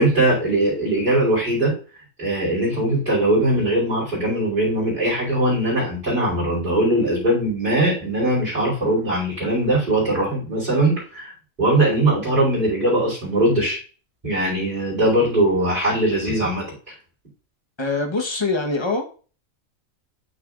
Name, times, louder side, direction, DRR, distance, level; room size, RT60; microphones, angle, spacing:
voice 1, 0.0-1.7 2.2-11.3 11.6-13.8 14.2-16.6, right 1 dB, 40° right, 4.2 m, -20 dB
voice 2, 17.8-19.1, left 3 dB, 20° left, 1.1 m, -23 dB
8.4 x 6.7 x 2.5 m
omnidirectional pair, 1.4 m